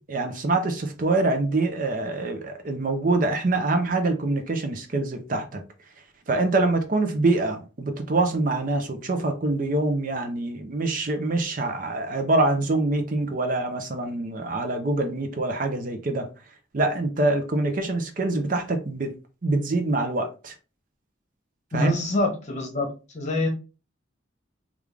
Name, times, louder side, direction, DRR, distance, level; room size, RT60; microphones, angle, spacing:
voice 1, 0.1-5.6 6.3-16.3 16.7-19.1 19.4-20.5 21.7-21.9, right 2 dB, 45° right, 0.5 m, -25 dB
voice 2, 21.7-23.5, left 2 dB, 35° left, 1.0 m, -26 dB
3.5 x 2.4 x 3.2 m
head